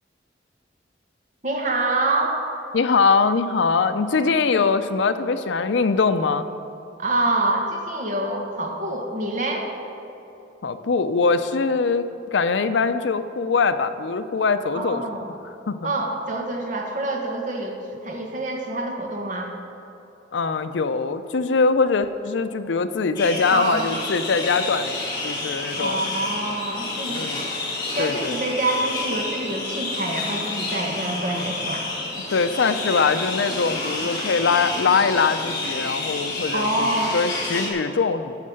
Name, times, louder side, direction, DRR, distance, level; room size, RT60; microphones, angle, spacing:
voice 1, 1.4-2.4 4.6-4.7 7.0-9.7 14.7-15.3 15.8-19.5 23.5-23.9 25.7-27.3 27.9-31.8 36.5-37.2, right 2 dB, 45° right, 1 dB, 1.4 m, -26 dB
voice 2, 2.7-6.4 10.6-15.0 15.4-15.9 20.3-26.0 27.1-27.5 28.0-28.4 32.3-36.9 37.1-38.4, left 4 dB, 80° left, 11 dB, 0.5 m, -22 dB
sound 1, 23.1-37.7, left 2 dB, 25° left, 2.1 m, -29 dB
13.0 x 5.4 x 6.4 m, 2.9 s
head